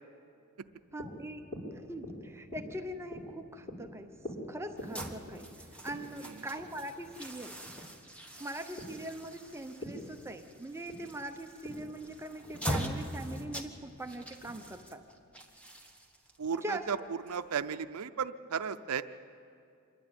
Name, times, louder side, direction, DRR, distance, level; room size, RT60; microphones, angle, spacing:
sound 1, 0.6-15.2, equal, 40° left, 4.9 m, -47 dB
voice 1, 0.9-4.2 4.5-5.5 5.8-7.6 8.4-15.0 16.5-16.9, right 1 dB, 10° right, 6 dB, 0.7 m, -42 dB
sound 2, 4.8-17.8, equal, 5° left, 1.3 m, -43 dB
voice 2, 16.4-17.0 17.3-19.0, right 6 dB, 75° right, 10 dB, 0.5 m, -34 dB
26.5 x 11.5 x 8.9 m, 2.4 s
head